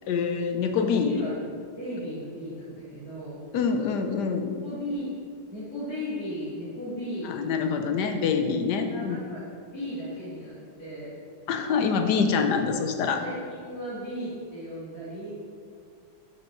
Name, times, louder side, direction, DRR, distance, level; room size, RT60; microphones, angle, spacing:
voice 1, 0.1-1.2 3.5-4.5 7.2-9.2 11.5-13.2, left 5 dB, 70° left, 5 dB, 1.2 m, -25 dB
voice 2, 1.0-1.4 1.8-3.4 4.6-5.1 5.5-7.3 8.9-9.4 9.7-11.2 13.1-15.3, equal, 50° left, -12 dB, 2.8 m, -36 dB
6.5 x 6.1 x 6.0 m, 2.3 s
omnidirectional pair, 2.0 m